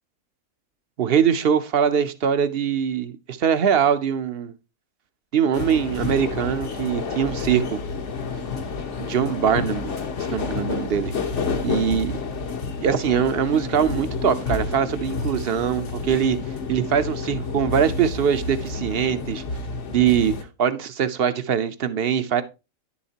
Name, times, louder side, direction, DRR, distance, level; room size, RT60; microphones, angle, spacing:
voice 1, 1.0-4.5 5.3-7.8 9.0-9.9 10.3-11.1 11.6-12.2 12.8-16.4 16.7-19.4 19.9-20.3 20.6-22.4, right 8 dB, 55° right, 0.8 m, -22 dB
sound 1, 5.5-20.4, left 4 dB, 60° left, 1.3 m, -29 dB
10.0 x 7.1 x 2.8 m
omnidirectional pair, 1.4 m